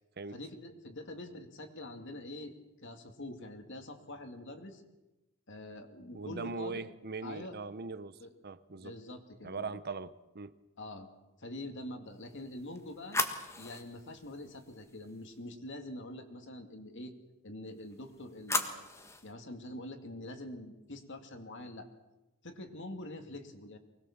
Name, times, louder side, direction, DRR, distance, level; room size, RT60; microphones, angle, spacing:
voice 1, 0.3-2.5 2.8-4.8 5.5-6.8 7.2-7.5 8.2-8.3 8.8-9.7 10.8-11.1 11.4-13.2 13.6-17.1 17.4-18.9 19.2-21.9 22.4-23.8, left 1 dB, 55° left, 2.3 m, -45 dB
voice 2, 6.1-8.9 9.4-10.6, right 4 dB, 45° right, 0.9 m, -41 dB
sound 1, 12.3-15.4 17.8-19.3, left 2 dB, 15° left, 1.6 m, -38 dB
24.5 x 20.0 x 7.3 m
head